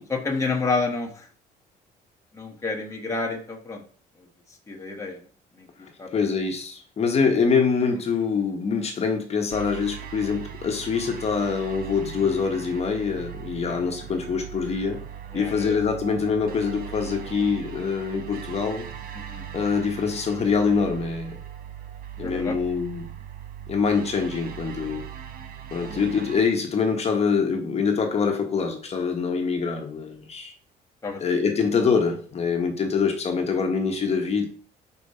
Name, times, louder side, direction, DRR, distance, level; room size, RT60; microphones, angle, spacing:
voice 1, 0.1-1.3 2.3-3.8 4.7-5.2 5.6-5.7 6.0-6.2 13.6-13.8 15.3-15.8 19.3-19.4 22.2-22.6 25.9-26.1 31.0-31.2 31.6-31.7, left 3 dB, 20° left, 1 dB, 1.2 m, -29 dB
voice 2, 5.8-15.0 15.3-18.9 19.5-21.4 22.2-23.1 23.7-25.1 25.7-30.5 31.2-34.5, left 5 dB, 40° left, 3 dB, 1.2 m, -25 dB
sound 1, 9.5-26.5, right 9 dB, 60° right, 0.8 m, -39 dB
5.2 x 4.6 x 4.3 m, 0.43 s
cardioid pair, 110°, 17 cm